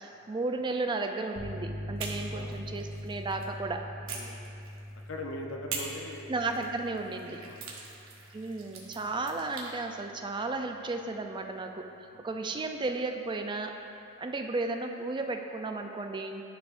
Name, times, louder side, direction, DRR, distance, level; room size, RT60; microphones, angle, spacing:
voice 1, 0.0-3.9 6.3-7.4 8.3-13.8 14.2-16.4, right 3 dB, 25° right, 4 dB, 0.3 m, -34 dB
sound 1, 1.4-9.1, left 1 dB, 50° right, 1.3 m, -42 dB
sound 2, 2.0-3.5 4.1-5.1 5.7-9.8, right 4 dB, 80° right, 0.9 m, -43 dB
voice 2, 5.1-6.3 7.4-7.7 12.1-12.4, left 1 dB, 70° left, 2 dB, 0.6 m, -41 dB
11.0 x 4.6 x 2.5 m, 2.7 s
head